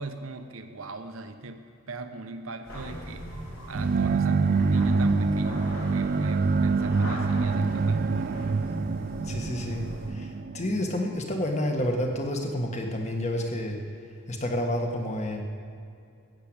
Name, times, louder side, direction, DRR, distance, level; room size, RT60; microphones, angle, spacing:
voice 1, 0.0-3.3 3.7-8.5, right 3 dB, 80° right, 7 dB, 1.0 m, -39 dB
sound 1, 2.6-10.1, equal, 65° left, 4.5 m, -39 dB
sound 2, 3.7-11.5, right 4 dB, 45° right, 0.4 m, -26 dB
voice 2, 9.2-13.8 14.3-15.4, left 1 dB, 35° left, 2 dB, 1.6 m, -29 dB
15.0 x 7.7 x 8.7 m, 2.5 s
head